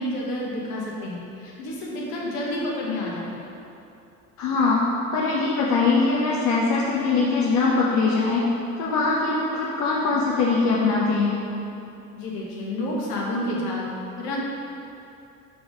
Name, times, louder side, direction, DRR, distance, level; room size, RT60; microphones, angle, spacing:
voice 1, 0.0-3.5 12.1-13.9 14.2-14.4, left 1 dB, 55° left, -4 dB, 1.4 m, -29 dB
voice 2, 4.4-4.8 5.1-8.4 8.8-11.3, left 4 dB, 40° left, -5 dB, 0.8 m, -22 dB
5.0 x 4.0 x 4.8 m, 2.7 s
figure-of-eight pair, 60°, 43 cm